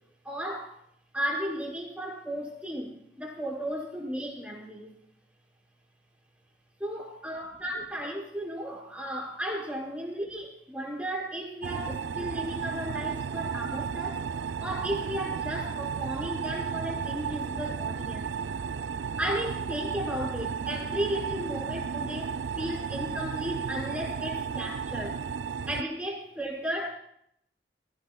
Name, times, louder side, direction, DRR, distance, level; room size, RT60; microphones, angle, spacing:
voice 1, 0.2-0.8 1.1-4.9 6.8-14.2 14.6-18.4 19.2-25.2 25.7-26.9, equal, 10° right, -3 dB, 5.3 m, -34 dB
sound 1, 11.6-25.8, right 6 dB, 85° right, 0.4 m, -33 dB
22.0 x 17.5 x 2.3 m, 0.69 s
head